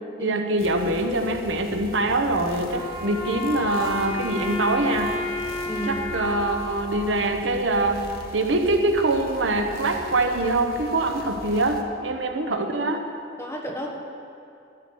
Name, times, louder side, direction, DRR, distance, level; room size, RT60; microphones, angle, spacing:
voice 1, 0.2-5.1 5.9-8.0 8.3-13.0, right 2 dB, 70° right, 5 dB, 1.0 m, -24 dB
sound 1, 0.6-11.8, left 1 dB, 55° left, 1.1 m, -41 dB
Wind instrument woodwind instrument, 2.7-7.8, left 2 dB, 25° right, 2.6 m, -32 dB
voice 2, 5.6-6.0 13.4-14.0, equal, 15° left, 0 dB, 1.3 m, -31 dB
12.5 x 12.0 x 4.7 m, 2.6 s
head